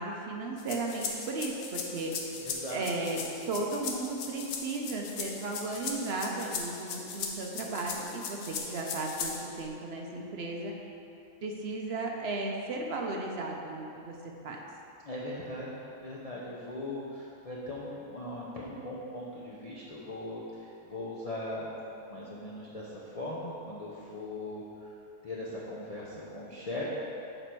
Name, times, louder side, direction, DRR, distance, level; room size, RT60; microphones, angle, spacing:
voice 1, 0.0-2.3 2.7-3.2 3.5-10.7 11.4-14.2 14.4-14.6, right 2 dB, 55° right, 0 dB, 0.7 m, -35 dB
sound 1, 0.6-9.6, left 5 dB, 70° left, 1.1 m, -38 dB
voice 2, 2.4-2.8 15.0-21.7 22.1-24.9 25.2-26.9, left 1 dB, 45° left, -6 dB, 0.4 m, -39 dB
6.7 x 4.4 x 4.5 m, 2.7 s
omnidirectional pair, 1.6 m